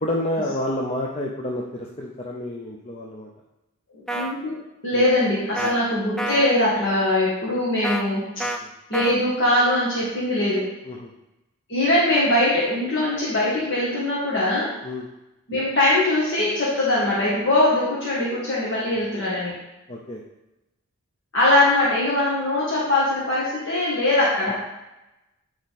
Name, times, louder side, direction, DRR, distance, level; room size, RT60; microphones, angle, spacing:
voice 1, 0.0-3.3 4.9-5.1 5.6-5.7 8.4-8.7 10.8-11.1 14.8-15.1 19.9-20.2 24.5-24.6, left 1 dB, 30° left, -2 dB, 0.7 m, -29 dB
voice 2, 3.9-4.5 4.8-8.2 8.9-10.7 11.7-14.7 15.5-19.5 21.3-24.5, left 1 dB, 60° left, -7 dB, 1.9 m, -21 dB
sound 1, 4.1-4.3 5.6-5.7 6.2-6.5 7.8-8.0 8.4-8.6 8.9-9.1, right 1 dB, 5° left, 0.4 m, -28 dB
8.4 x 4.7 x 4.2 m, 0.96 s
head